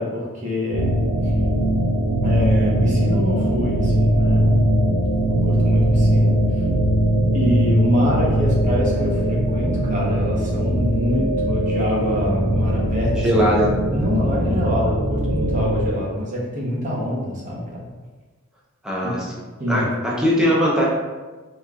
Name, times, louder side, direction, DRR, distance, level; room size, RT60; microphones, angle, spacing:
voice 1, 0.0-1.3 2.2-6.6 7.3-13.6 13.9-17.9 19.0-19.1 19.6-19.8, left 1 dB, 35° right, -5 dB, 0.9 m, -25 dB
sound 1, 0.7-15.9, right 1 dB, 70° right, 0.8 m, -20 dB
voice 2, 13.2-13.7 18.8-19.2 19.7-20.8, equal, 5° right, -6 dB, 0.7 m, -19 dB
4.2 x 3.4 x 2.4 m, 1.3 s
head